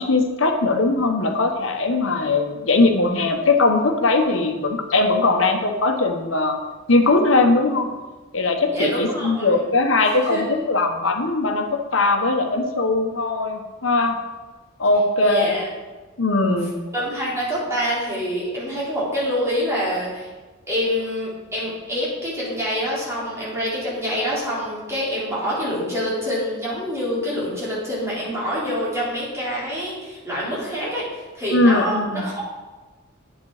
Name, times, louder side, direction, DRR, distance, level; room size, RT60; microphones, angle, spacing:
voice 1, 0.0-6.6 6.9-7.9 8.3-14.2 14.8-15.6 16.2-16.7 31.5-32.2, left 2 dB, 75° left, 5 dB, 1.3 m, -20 dB
voice 2, 8.7-9.5 10.2-10.4 15.2-15.7 16.9-20.3 20.7-32.4, equal, 15° right, -7 dB, 4.2 m, -26 dB
10.5 x 8.4 x 5.0 m, 1.3 s
head